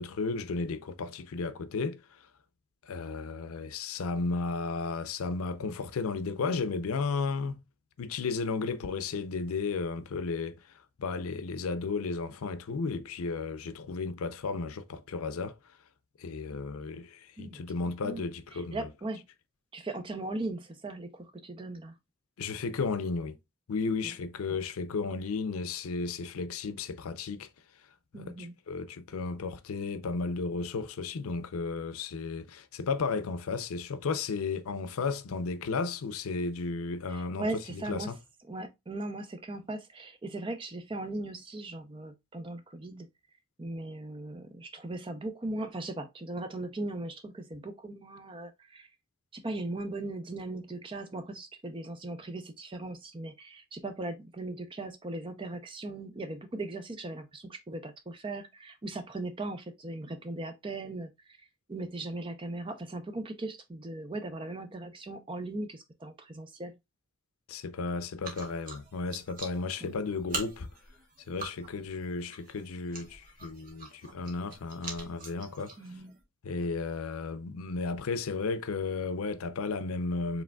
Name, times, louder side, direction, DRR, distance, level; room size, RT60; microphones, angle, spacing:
voice 1, 0.0-2.2 2.8-7.6 8.0-10.6 11.0-15.6 16.2-18.9 22.4-23.4 23.7-27.5 28.1-37.4 37.7-38.1 67.5-70.7 71.3-75.7 76.4-80.4, left 4 dB, 90° left, 0.5 m, -34 dB
voice 2, 18.0-19.3 19.7-21.9 24.0-24.2 24.5-24.6 28.1-28.5 37.1-38.1 38.5-43.1 43.6-48.9 49.3-61.1 61.7-66.7 69.8-69.9 75.8-76.2, right 2 dB, 25° right, 0.5 m, -38 dB
sound 1, 68.2-76.2, right 3 dB, 40° right, 1.1 m, -44 dB
4.9 x 3.3 x 2.2 m
head